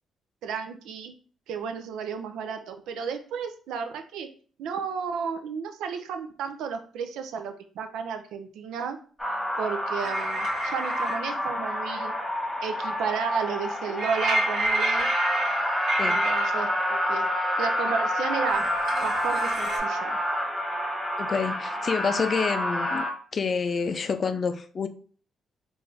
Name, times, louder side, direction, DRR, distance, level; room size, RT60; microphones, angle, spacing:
voice 1, 0.4-1.1 1.5-4.3 4.6-9.0 9.6-12.1 12.6-15.1 16.1-17.3 17.6-18.7 19.0-20.2, right 6 dB, 85° right, 0.5 m, -33 dB
sound 1, 9.2-23.1, equal, 10° left, 1.2 m, -28 dB
sound 2, 10.0-11.2 14.0-16.5 18.5-19.8, right 2 dB, 65° right, 1.1 m, -29 dB
voice 2, 21.2-23.0 23.3-24.9, left 5 dB, 45° left, 0.4 m, -28 dB
3.8 x 2.5 x 3.3 m
cardioid pair, 90°, 0 cm